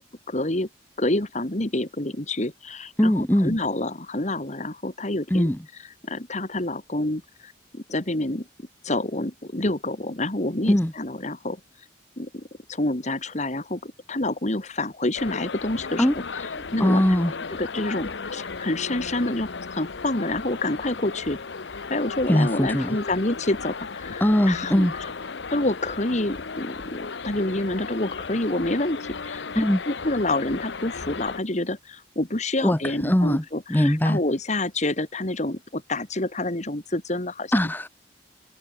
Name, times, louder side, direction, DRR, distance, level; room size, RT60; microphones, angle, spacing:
voice 1, 0.3-0.7 1.0-5.5 6.0-8.5 8.8-11.6 12.2-16.1 16.7-17.0 17.6-21.4 21.9-24.9 25.5-37.5, left 2 dB, 40° left, 2.1 m, -28 dB
voice 2, 3.0-3.6 5.3-5.6 10.6-10.9 16.0-16.2 16.8-17.3 22.3-23.0 24.2-24.9 29.5-29.8 32.6-33.4 33.7-34.2 37.5-37.9, equal, 10° left, 1.0 m, -21 dB
sound 1, 15.1-31.4, left 4 dB, 75° left, 1.0 m, -35 dB
head